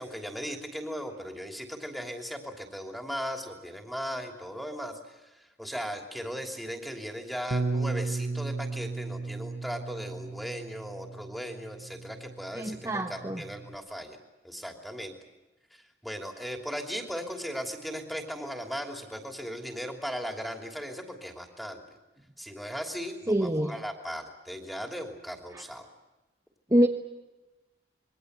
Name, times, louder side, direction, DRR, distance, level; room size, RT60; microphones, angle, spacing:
voice 1, 0.0-14.2 14.4-15.1 15.7-21.8 22.4-25.9, equal, ahead, 2 dB, 3.0 m, -37 dB
Bass guitar, 7.5-13.7, right 3 dB, 60° right, 0.9 m, -35 dB
voice 2, 12.5-13.4 23.3-23.8 25.5-25.6 26.7-26.9, equal, 20° right, 1 dB, 1.2 m, -25 dB
27.0 x 22.5 x 8.1 m, 1.1 s
head